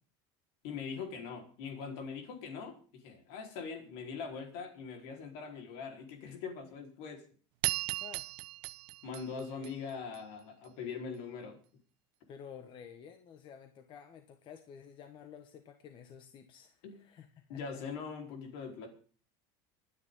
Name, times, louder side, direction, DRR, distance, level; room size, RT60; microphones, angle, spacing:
voice 1, 0.6-7.3 9.0-11.6 16.8-17.0 17.5-18.9, left 5 dB, 70° left, 3 dB, 4.4 m, -42 dB
sound 1, 7.6-10.2, right 20 dB, 75° right, 0.8 m, -37 dB
voice 2, 12.3-17.8, left 7 dB, 40° left, 6 dB, 1.5 m, -52 dB
26.5 x 9.8 x 3.9 m, 0.42 s
supercardioid pair, 140°, 13 cm